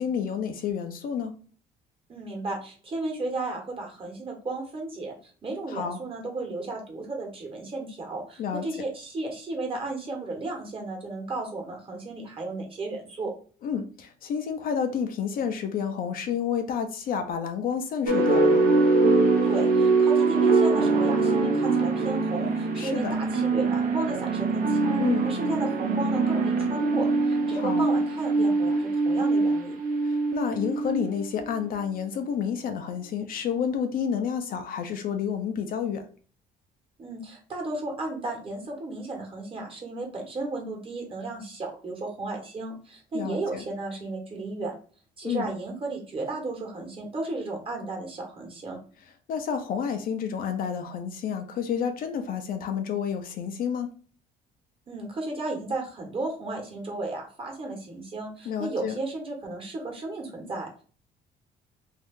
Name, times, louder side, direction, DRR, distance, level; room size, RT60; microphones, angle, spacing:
voice 1, 0.0-1.3 5.7-6.0 8.4-8.6 13.6-18.6 22.8-23.2 25.0-25.3 27.5-27.9 30.0-36.0 43.1-43.6 45.2-45.5 49.3-53.9 58.5-59.0, left 7 dB, 55° left, 6 dB, 0.6 m, -30 dB
voice 2, 2.1-13.3 19.4-25.0 25.2-29.8 37.0-44.7 45.2-48.8 54.9-60.8, right 2 dB, 30° right, 1 dB, 1.2 m, -34 dB
sound 1, 18.1-31.4, right 3 dB, 55° right, 0.8 m, -23 dB
2.7 x 2.4 x 3.6 m, 0.41 s
cardioid pair, 110°, 17 cm